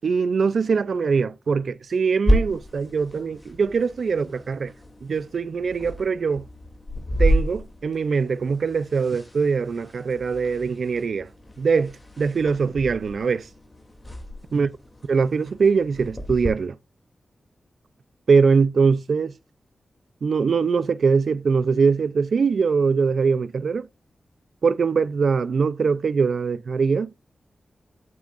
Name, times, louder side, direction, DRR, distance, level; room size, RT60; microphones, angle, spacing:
voice 1, 0.0-4.7 5.0-6.4 7.2-11.3 11.6-13.5 14.5-14.7 15.1-16.8 18.3-19.3 20.2-23.9 24.6-27.1, right 5 dB, 70° right, 0.5 m, -22 dB
sound 1, 2.3-16.5, equal, 20° left, 2.7 m, -30 dB
9.4 x 7.7 x 2.5 m
cardioid pair, 70°, 0 cm